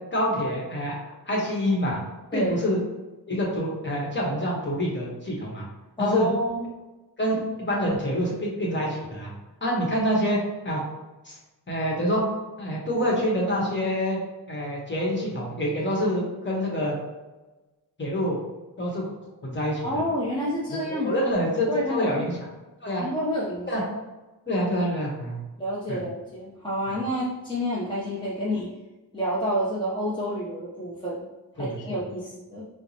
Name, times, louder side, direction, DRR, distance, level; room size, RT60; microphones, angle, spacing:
voice 1, 0.1-0.9 1.2-2.0 2.3-2.8 3.3-5.6 6.0-6.3 7.2-9.3 9.6-10.4 10.6-10.8 11.2-11.4 11.7-12.2 12.6-14.2 14.5-16.9 18.0-18.4 18.8-19.1 19.4-19.8 20.9-22.4 22.8-23.0 23.7-23.8 24.5-25.4 25.9-26.0 26.9-27.0 31.6-32.0, equal, 30° left, -3 dB, 1.1 m, -26 dB
voice 2, 6.0-6.7 19.8-21.1 21.7-22.3 23.0-23.7 25.6-28.7 29.1-31.2 31.5-32.6, equal, 10° left, -7 dB, 0.6 m, -29 dB
4.5 x 2.1 x 2.8 m, 1.1 s
wide cardioid pair, 85°, 39 cm